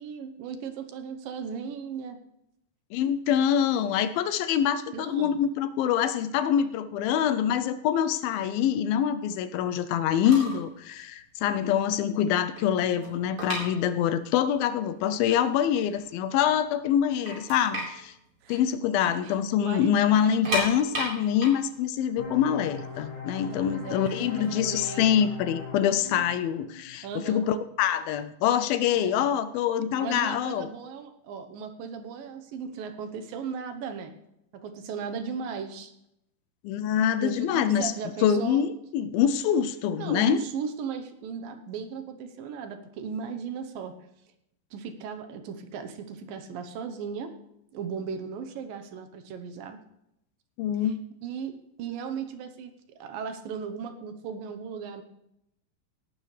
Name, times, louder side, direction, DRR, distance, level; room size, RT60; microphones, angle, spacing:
voice 1, 0.0-2.2 4.9-5.4 18.4-18.6 19.2-19.3 19.6-20.6 23.4-25.2 27.0-27.5 28.9-29.3 30.0-34.1 34.6-35.9 37.2-38.7 40.0-43.9 44.7-47.3 47.7-49.8 50.8-50.9 51.2-52.7 53.0-55.0, right 6 dB, 75° right, 8 dB, 2.7 m, -37 dB
voice 2, 2.9-18.1 18.5-30.7 36.6-37.9 38.2-40.4 50.6-51.0, left 9 dB, 80° left, 12 dB, 2.4 m, -25 dB
sound 1, 10.0-10.1 10.3-10.7 11.0-11.2 11.7-11.8 12.1-14.4 14.6-14.7 15.4-15.5 15.8-16.5 16.9-17.0 17.3-19.2 19.5-19.6 20.2-23.1 23.9-25.6, right 1 dB, 35° right, 5.1 m, -34 dB
sound 2, 22.2-27.6, left 5 dB, 55° left, 5.8 m, -40 dB
18.0 x 12.0 x 3.3 m, 0.81 s
omnidirectional pair, 4.3 m